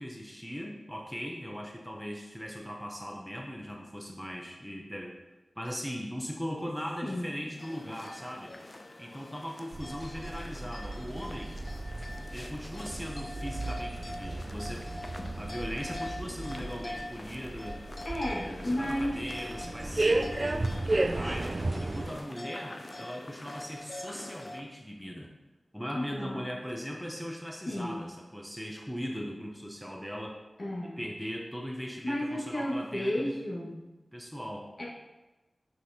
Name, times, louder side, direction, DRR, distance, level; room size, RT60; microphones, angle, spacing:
voice 1, 0.0-5.2 5.6-8.6 9.0-11.6 12.3-15.0 15.3-17.8 18.3-25.3 25.7-30.4 30.8-33.4 34.1-34.7, equal, ahead, 0 dB, 0.8 m, -39 dB
sound 1, 7.6-24.6, left 1 dB, 40° left, 0.6 m, -44 dB
sound 2, 9.7-22.2, right 2 dB, 45° right, 0.3 m, -34 dB
voice 2, 18.0-19.2 25.9-26.4 27.7-28.0 30.6-31.0 32.0-33.8 34.8-34.9, left 1 dB, 60° left, -5 dB, 1.8 m, -32 dB
6.0 x 5.9 x 2.9 m, 1.1 s
wide cardioid pair, 55°, 0 cm